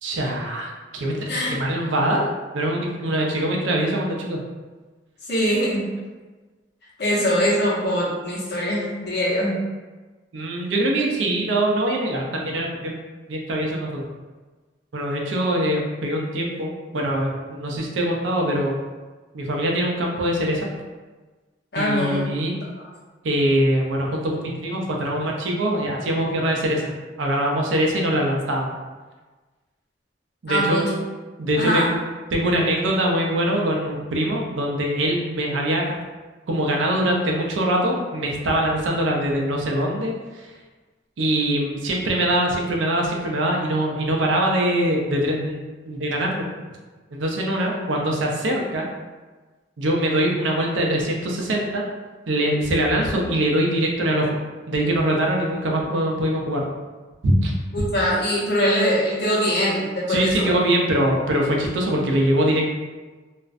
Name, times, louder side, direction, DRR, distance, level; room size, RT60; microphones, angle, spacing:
voice 1, 0.0-4.4 7.1-7.3 10.3-13.0 13.3-14.0 14.9-18.7 19.3-20.7 21.7-22.6 23.2-26.9 27.2-28.7 30.4-30.8 31.4-32.0 32.3-35.8 36.5-40.5 41.2-46.5 47.1-48.9 49.8-51.8 52.3-54.4 54.7-56.7 57.2-57.5 60.1-62.6, right 1 dB, 90° right, 0 dB, 0.5 m, -23 dB
voice 2, 5.2-5.9 7.0-9.6 21.7-22.2 22.8-22.9 30.5-30.9 31.6-31.9 57.7-60.4, equal, 65° left, -6 dB, 0.8 m, -22 dB
2.4 x 2.1 x 2.4 m, 1.3 s
head